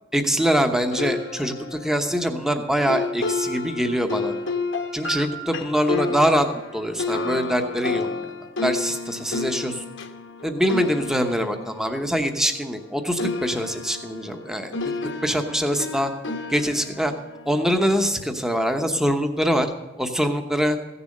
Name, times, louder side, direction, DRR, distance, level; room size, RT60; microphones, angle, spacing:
voice 1, 0.1-4.3 4.9-6.5 6.7-8.1 8.6-9.8 10.4-14.7 15.2-16.1 16.5-17.1 17.5-19.7 20.0-20.8, equal, 5° right, 6 dB, 0.9 m, -23 dB
sound 1, 0.9-12.9 13.2-18.4, left 3 dB, 65° left, 1.0 m, -31 dB
15.5 x 6.9 x 6.5 m, 1.1 s
head